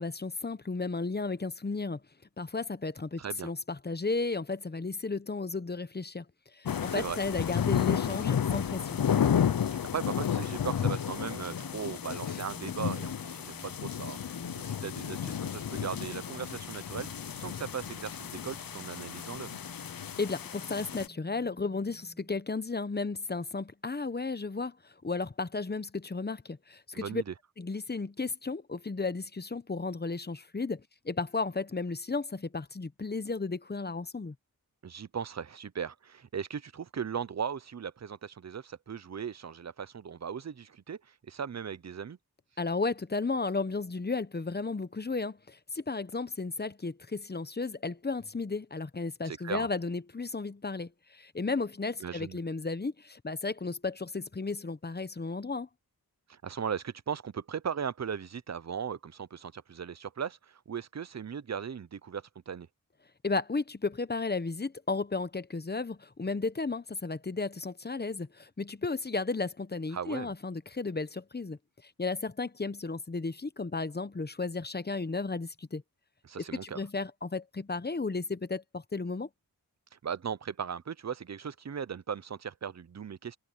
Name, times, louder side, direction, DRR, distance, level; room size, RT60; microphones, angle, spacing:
voice 1, 0.0-2.0 2.4-6.2 6.5-9.0 12.3-12.4 20.2-27.2 27.6-34.3 42.6-55.7 63.2-75.8 76.6-79.3, left 3 dB, 25° left, 1.0 m, -34 dB
voice 2, 3.2-3.5 6.9-7.2 9.6-17.1 17.3-19.6 26.9-27.3 34.8-42.2 49.3-49.7 52.0-52.4 56.3-62.7 69.9-70.3 76.2-76.8 80.0-83.4, right 7 dB, 45° right, 0.7 m, -38 dB
sound 1, 6.6-21.1, left 8 dB, 65° left, 0.8 m, -32 dB
sound 2, 10.9-22.4, equal, ahead, 4.2 m, -53 dB
wide cardioid pair, 75°, 37 cm